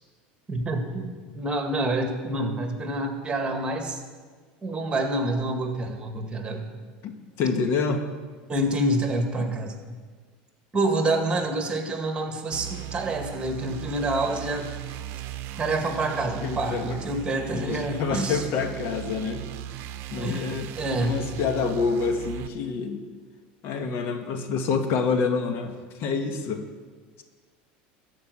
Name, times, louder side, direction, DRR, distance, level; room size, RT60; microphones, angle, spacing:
voice 1, 0.5-4.0 4.6-6.6 8.5-9.7 10.7-14.7 15.6-18.4 20.2-20.5 20.7-21.2, right 2 dB, 20° right, 4 dB, 1.9 m, -27 dB
voice 2, 7.4-8.1 9.4-9.5 16.2-17.0 17.5-19.4 20.1-20.7 21.0-23.0 23.6-25.7 26.0-26.7, left 5 dB, 60° left, 6 dB, 1.2 m, -27 dB
sound 1, 12.5-22.5, right 12 dB, 60° right, 0.7 m, -37 dB
13.0 x 5.3 x 8.4 m, 1.5 s
supercardioid pair, 100°, 5 cm